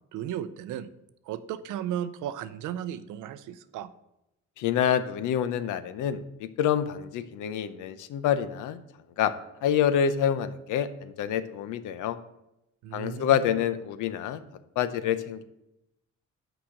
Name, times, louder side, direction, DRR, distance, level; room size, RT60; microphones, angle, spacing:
voice 1, 0.1-0.9 1.2-3.9 12.8-13.5, right 10 dB, 90° right, 14 dB, 0.6 m, -35 dB
voice 2, 4.6-8.8 9.2-9.3 9.6-12.2 12.9-14.4 14.8-15.4, left 9 dB, 85° left, 13 dB, 0.6 m, -27 dB
6.0 x 4.9 x 6.4 m, 0.87 s
cardioid pair, 90°, 30 cm